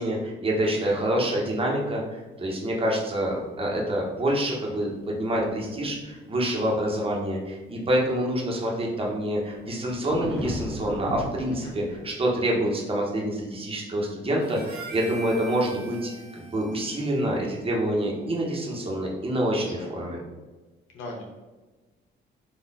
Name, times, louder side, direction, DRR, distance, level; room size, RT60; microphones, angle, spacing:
voice 1, 0.0-20.2, right 1 dB, 30° right, -2 dB, 1.2 m, -27 dB
voice 2, 0.6-1.0 11.6-11.7 19.5-19.9 20.9-21.2, left 2 dB, 85° left, -1 dB, 1.2 m, -40 dB
sound 1, 5.2-6.2 6.8-7.1 8.0-8.1 9.3-12.1, equal, 5° left, 1.2 m, -37 dB
Harmonica, 14.4-18.9, right 2 dB, 50° right, 0.9 m, -44 dB
4.2 x 2.7 x 4.2 m, 1.2 s
cardioid pair, 90°, 20 cm